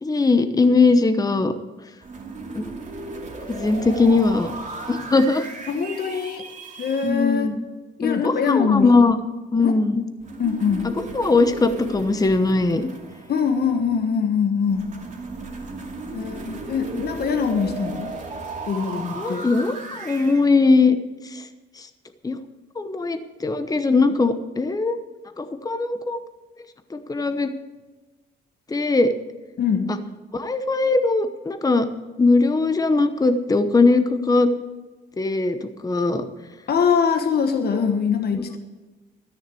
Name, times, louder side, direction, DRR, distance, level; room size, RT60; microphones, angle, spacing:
voice 1, 0.0-1.5 2.5-2.6 3.5-4.5 4.9-5.5 7.0-7.6 8.0-9.2 9.5-10.0 10.8-12.9 16.9-17.0 19.1-21.0 21.2-21.5 21.8-21.9 22.2-22.4 22.8-25.0 25.4-26.2 26.9-27.5 28.7-29.1 29.9-30.0 30.3-31.9 32.2-34.5 35.2-36.3, left 3 dB, 20° left, 9 dB, 0.9 m, -20 dB
sound 1, 2.0-7.1 10.2-14.0 14.7-20.4, right 3 dB, 40° right, 2.4 m, -36 dB
voice 2, 5.7-6.4 6.8-7.5 8.0-8.9 9.6-9.7 10.4-10.9 13.3-14.8 16.1-18.2 18.6-19.5 29.6-29.9 36.7-38.6, left 6 dB, 50° left, 6 dB, 1.3 m, -23 dB
13.5 x 6.6 x 8.4 m, 1.2 s
cardioid pair, 90°, 20 cm